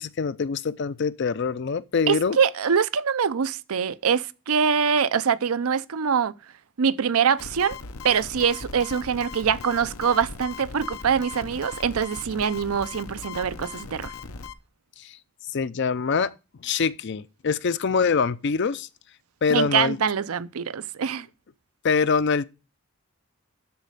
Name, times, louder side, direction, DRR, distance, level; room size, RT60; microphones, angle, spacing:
voice 1, 0.0-2.4 15.0-15.2 15.5-16.3 16.6-18.9 19.4-20.0 21.8-22.4, left 5 dB, 55° left, 0.5 m, -24 dB
voice 2, 2.1-6.3 6.8-7.8 8.0-14.1 19.5-21.3, right 7 dB, 80° right, 0.6 m, -24 dB
sound 1, 7.4-14.5, left 5 dB, 80° left, 0.8 m, -39 dB
12.5 x 4.2 x 6.5 m
head